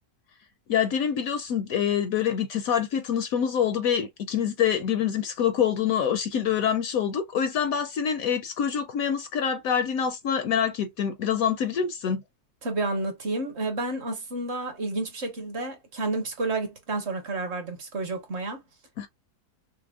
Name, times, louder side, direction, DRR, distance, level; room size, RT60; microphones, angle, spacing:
voice 1, 0.7-12.2 19.0-19.1, left 8 dB, 70° left, 0.9 m, -26 dB
voice 2, 12.6-18.6, right 2 dB, 45° right, 1.3 m, -30 dB
6.0 x 2.0 x 2.3 m
omnidirectional pair, 1.7 m